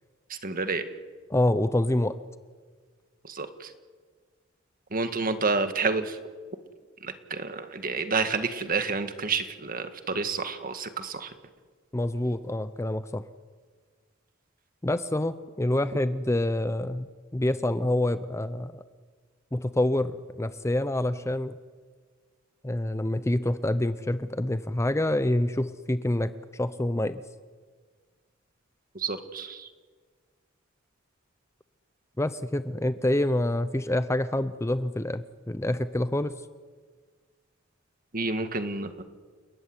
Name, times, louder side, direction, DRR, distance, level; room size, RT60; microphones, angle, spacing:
voice 1, 0.4-0.8 3.3-3.7 4.9-6.2 7.0-11.3 29.0-29.7 38.1-39.0, right 4 dB, 45° right, 9 dB, 1.8 m, -29 dB
voice 2, 1.3-2.2 11.9-13.2 14.8-17.1 17.3-18.8 19.5-21.6 22.6-27.2 32.2-36.3, left 1 dB, 15° left, 12 dB, 0.7 m, -27 dB
30.0 x 14.0 x 9.8 m, 1.5 s
head